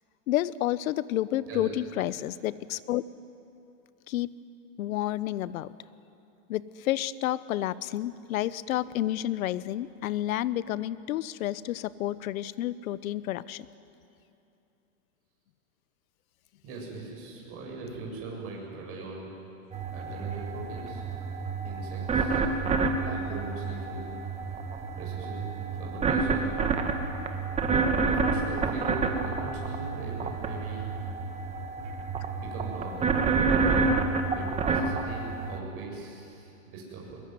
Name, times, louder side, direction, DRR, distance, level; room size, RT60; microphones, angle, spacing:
voice 1, 0.3-3.0 4.1-4.3 4.8-5.7 6.5-13.7, left 14 dB, 70° left, 17 dB, 1.0 m, -30 dB
voice 2, 16.6-19.3 19.9-21.1 21.6-24.1 25.0-26.5 28.1-30.9 32.4-33.3 34.3-37.2, right 3 dB, 30° right, -2 dB, 7.4 m, -40 dB
sound 1, 19.7-35.6, right 4 dB, 15° right, 1.6 m, -29 dB
22.5 x 21.5 x 9.6 m, 2.8 s
supercardioid pair, 155°, 42 cm